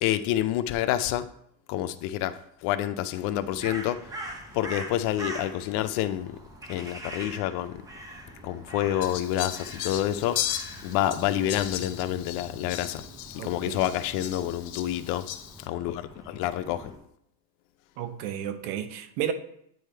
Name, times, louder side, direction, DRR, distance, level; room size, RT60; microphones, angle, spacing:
voice 1, 0.0-1.3 1.7-2.4 2.6-4.0 4.5-6.3 6.7-7.8 8.4-10.4 10.8-13.0 13.3-15.2 15.7-16.9, left 12 dB, 50° left, 12 dB, 0.4 m, -28 dB
Crow, 3.2-17.0, right 1 dB, 10° right, 0.5 m, -43 dB
Fowl, 9.0-15.7, left 12 dB, 75° left, 0.8 m, -36 dB
voice 2, 13.4-13.9 18.0-19.3, right 10 dB, 85° right, 9 dB, 0.9 m, -32 dB
9.3 x 3.3 x 4.4 m, 0.73 s
cardioid pair, 165°, 46 cm